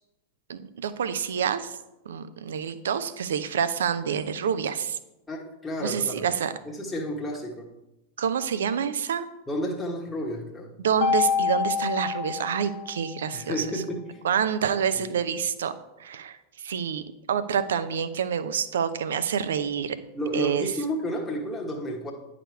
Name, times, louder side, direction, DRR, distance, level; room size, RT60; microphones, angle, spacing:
voice 1, 0.5-1.8 2.1-5.0 5.8-6.5 8.2-9.3 10.8-13.8 14.2-15.7 16.0-17.0 17.3-20.0 20.3-20.7, right 7 dB, 65° right, 12 dB, 0.6 m, -27 dB
voice 2, 5.3-6.2 6.6-7.7 9.5-10.7 13.3-14.2 14.9-15.2 20.1-22.1, equal, 10° left, -3 dB, 1.3 m, -31 dB
Mallet percussion, 11.0-13.3, left 7 dB, 50° left, 0.6 m, -27 dB
9.9 x 4.9 x 4.6 m, 0.94 s
figure-of-eight pair, 90°, 0 cm